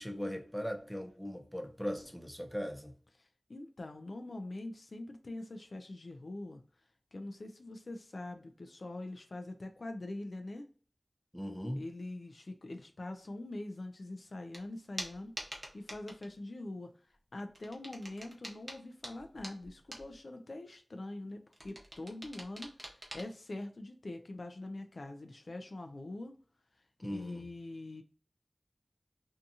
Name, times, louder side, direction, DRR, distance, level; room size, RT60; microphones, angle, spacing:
voice 1, 0.0-2.9 11.3-11.8 27.0-27.4, equal, 10° left, 0.6 m, -39 dB
voice 2, 3.2-6.6 7.1-10.7 11.8-16.9 17.3-26.4 27.0-28.0, left 2 dB, 75° left, 0.3 m, -44 dB
sound 1, 14.5-14.6 15.0-16.3 17.5-20.2 21.5-23.2, right 1 dB, 35° right, 0.8 m, -46 dB
2.6 x 2.3 x 2.6 m
wide cardioid pair, 45°, 0 cm